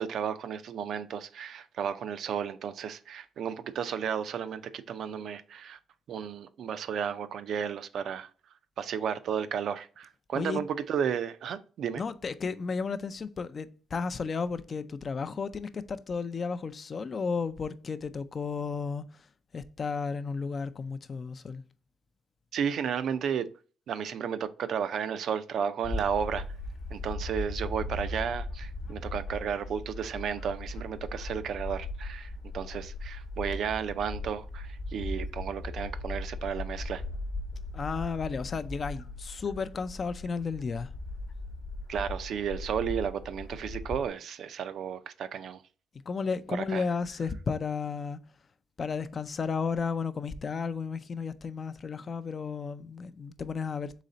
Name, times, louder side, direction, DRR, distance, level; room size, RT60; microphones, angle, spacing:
voice 1, 0.0-5.8 6.1-8.3 8.8-12.0 22.5-23.5 23.9-26.5 26.9-37.0 41.9-45.6 46.5-46.8, right 7 dB, 70° right, 0.4 m, -33 dB
voice 2, 12.0-19.0 19.5-21.6 37.7-40.9 46.1-48.2 48.8-53.9, left 5 dB, 40° left, 0.4 m, -33 dB
Bird / Wind, 25.8-44.1, left 2 dB, 70° left, 0.9 m, -38 dB
4.0 x 3.2 x 3.8 m
cardioid pair, 90°, 0 cm